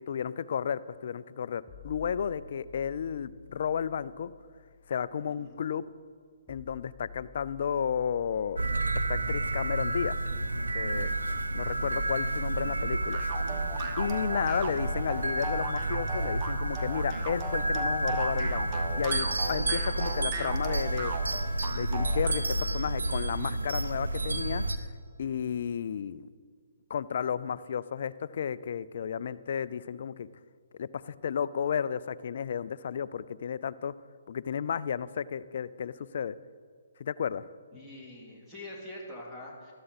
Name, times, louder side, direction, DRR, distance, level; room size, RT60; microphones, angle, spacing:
voice 1, 0.0-4.3 4.9-5.8 6.5-8.6 9.0-10.2 10.7-11.1 11.5-13.2 14.0-18.7 19.0-21.1 21.7-24.9 25.2-26.3 26.9-30.3 30.8-33.9 34.3-36.3 37.0-37.5, left 7 dB, 55° left, 17 dB, 0.4 m, -33 dB
sound 1, 1.7-5.7 6.5-20.5, left 5 dB, 20° left, 1.5 m, -51 dB
sound 2, 8.6-24.8, right 2 dB, 85° right, 0.9 m, -30 dB
sound 3, 13.1-22.4, right 3 dB, 30° right, 1.1 m, -38 dB
voice 2, 37.7-39.7, left 1 dB, 5° right, -5 dB, 2.6 m, -44 dB
13.0 x 12.5 x 4.2 m, 2.1 s
hypercardioid pair, 145°, 0 cm